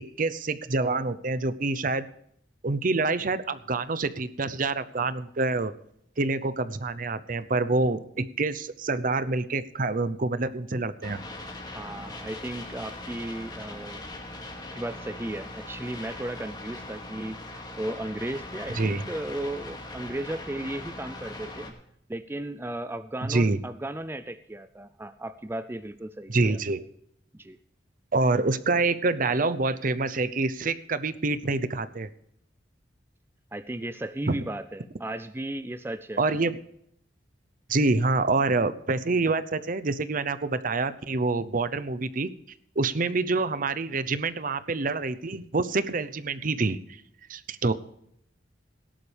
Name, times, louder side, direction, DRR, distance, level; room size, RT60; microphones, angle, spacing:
voice 1, 0.0-2.1 2.6-5.7 6.2-11.2 18.7-19.0 23.3-23.6 26.3-26.8 28.1-32.1 34.3-34.4 36.2-36.6 37.7-42.3 42.8-46.8 47.3-47.7, right 3 dB, 50° right, 14 dB, 0.7 m, -26 dB
sound 1, 11.0-21.7, left 2 dB, 25° left, 2.4 m, -40 dB
voice 2, 11.7-14.0 14.7-21.7 22.1-26.6 27.3-27.6 33.5-36.2, right 1 dB, 15° right, 12 dB, 0.4 m, -35 dB
17.5 x 11.5 x 3.4 m, 0.72 s
head